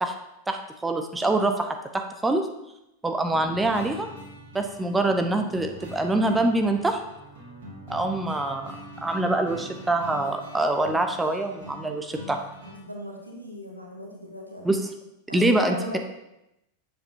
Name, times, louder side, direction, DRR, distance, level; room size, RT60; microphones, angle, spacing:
voice 1, 0.5-2.5 3.0-4.1 4.5-7.0 7.9-8.7 9.0-12.4 14.6-14.8 15.3-16.0, right 2 dB, 10° right, 5 dB, 0.6 m, -25 dB
sound 1, 3.3-12.8, equal, 60° right, 1.8 m, -43 dB
voice 2, 12.8-14.8 15.3-16.0, equal, 85° right, 1 dB, 1.3 m, -37 dB
7.7 x 6.7 x 2.8 m, 0.88 s
figure-of-eight pair, 90°, 0 cm